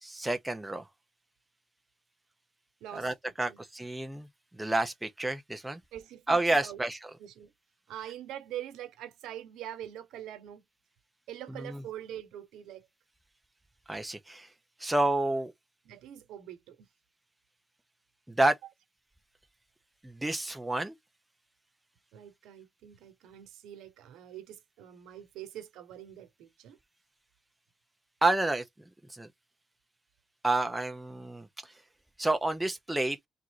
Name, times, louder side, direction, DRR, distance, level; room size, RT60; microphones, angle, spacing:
voice 1, 0.2-0.8 2.9-4.3 4.6-5.8 6.3-7.0 11.5-11.8 13.9-14.5 14.8-15.5 18.3-18.5 20.0-20.9 28.2-28.6 29.1-29.3 30.4-31.5 32.2-33.2, right 2 dB, 5° right, 0.8 m, -29 dB
voice 2, 2.8-3.1 3.4-3.6 5.9-6.4 6.6-6.8 7.2-7.5 7.9-10.6 11.3-12.9 15.8-16.9 22.1-26.8, right 11 dB, 85° right, 1.1 m, -44 dB
3.6 x 2.6 x 4.6 m
cardioid pair, 125°, 0 cm